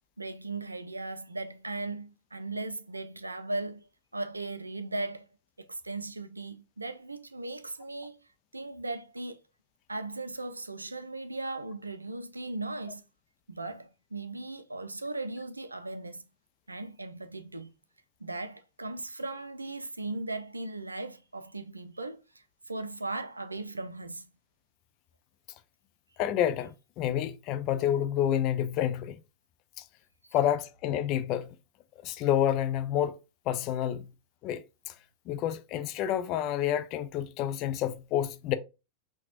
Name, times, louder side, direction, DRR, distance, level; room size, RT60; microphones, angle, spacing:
voice 1, 0.2-5.3 5.6-8.2 8.5-9.4 9.9-13.0 13.5-16.3 16.7-17.7 18.2-24.3, right 2 dB, 80° right, 0.4 m, -38 dB
voice 2, 26.2-29.2 30.3-31.5 32.0-33.2 33.5-34.0 34.4-34.9 35.3-38.5, left 10 dB, 40° left, 0.4 m, -29 dB
5.7 x 2.2 x 2.8 m
figure-of-eight pair, 90°, 0 cm